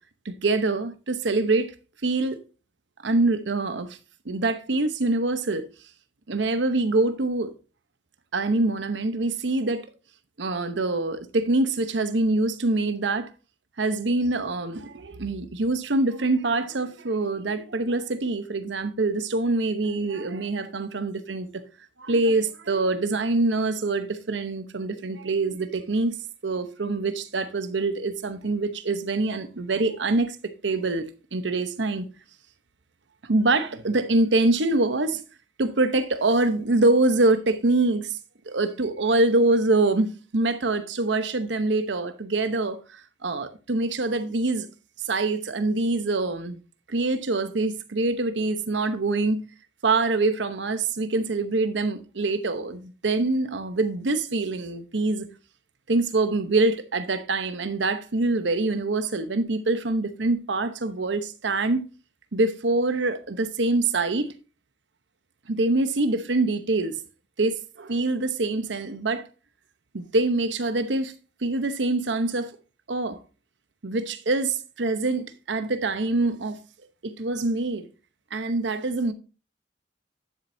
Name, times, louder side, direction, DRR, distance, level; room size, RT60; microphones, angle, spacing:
voice 1, 0.2-1.7 2.0-2.4 3.0-4.0 4.3-5.7 6.3-7.5 8.3-9.9 10.4-13.3 13.8-21.6 22.0-26.1 26.4-30.4 30.6-31.1 31.3-32.1 33.2-35.2 35.6-38.2 38.5-44.7 45.1-46.6 46.9-49.4 49.8-55.3 55.9-61.8 62.3-64.3 65.5-67.0 67.4-69.3 69.9-71.1 71.4-72.6 72.9-73.2 73.8-76.6 77.0-77.9 78.3-79.1, right 2 dB, 85° right, 0.9 m, -25 dB
12.0 x 7.4 x 2.7 m
head